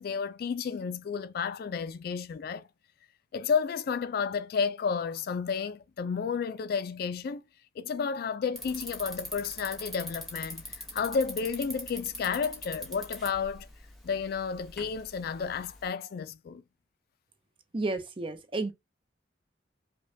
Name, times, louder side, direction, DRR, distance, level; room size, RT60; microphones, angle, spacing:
voice 1, 0.0-2.7 3.3-7.4 7.8-13.7 14.0-16.6, left 6 dB, 50° left, 0.3 m, -32 dB
Bicycle, 8.5-15.9, left 1 dB, ahead, 0.8 m, -43 dB
voice 2, 17.7-18.7, right 2 dB, 25° right, 0.5 m, -31 dB
5.1 x 2.2 x 2.7 m
head